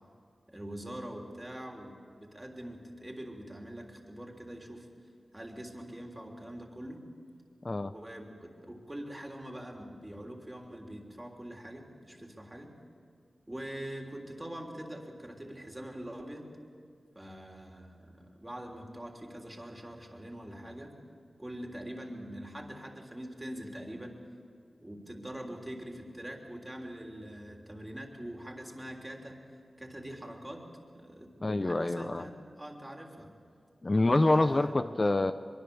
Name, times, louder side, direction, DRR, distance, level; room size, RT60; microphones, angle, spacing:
voice 1, 0.5-4.9 5.3-7.0 7.8-12.7 13.5-16.5 17.2-20.9 21.4-24.2 24.8-29.4 29.8-30.7 30.9-33.3 34.2-34.7, right 1 dB, 15° right, 1 dB, 3.5 m, -44 dB
voice 2, 31.4-32.3 33.8-35.3, left 2 dB, 35° left, 10 dB, 0.6 m, -26 dB
24.0 x 23.0 x 7.1 m, 2.2 s
wide cardioid pair, 85°, 0 cm